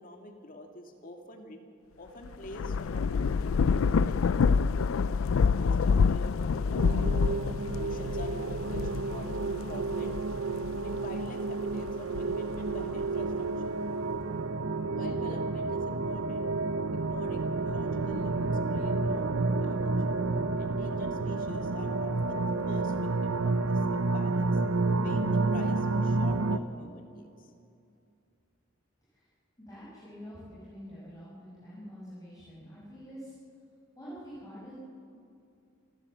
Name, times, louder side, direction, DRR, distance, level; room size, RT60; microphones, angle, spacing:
voice 1, 0.0-1.6 2.0-4.4 5.4-7.1 7.7-10.1 10.8-13.8 14.9-16.5 16.9-19.9 20.6-24.6 25.0-27.5, left 1 dB, 45° left, 3 dB, 2.2 m, -46 dB
Thunder / Rain, 2.3-11.2 11.7-13.0, left 5 dB, 85° left, 0.4 m, -27 dB
sound 1, 6.8-26.6, right 3 dB, 80° right, 0.8 m, -30 dB
voice 2, 29.6-33.3 34.0-34.7, equal, 20° left, -9 dB, 5.8 m, -46 dB
27.5 x 13.5 x 7.6 m, 2.5 s
head